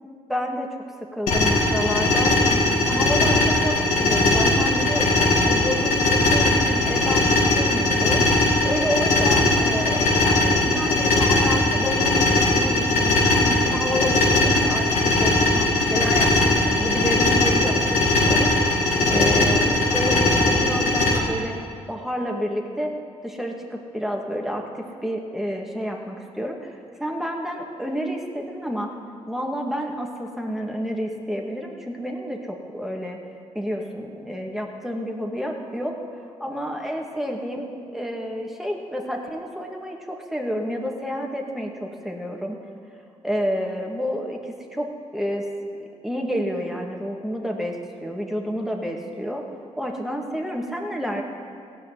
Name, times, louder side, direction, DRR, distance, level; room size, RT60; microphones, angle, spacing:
voice 1, 0.3-0.7 1.1-8.2 8.6-17.9 18.2-18.5 19.0-21.6 21.9-22.9 23.2-28.9 29.3-33.2 33.5-35.9 36.4-42.6 43.2-44.9 45.1-45.4 46.0-47.8 48.0-49.4 49.8-51.2, equal, 5° right, 1 dB, 2.2 m, -29 dB
sound 1, 1.3-21.2, left 2 dB, 85° left, 2.3 m, -20 dB
15.5 x 6.1 x 9.3 m, 2.3 s
supercardioid pair, 60°, 13 cm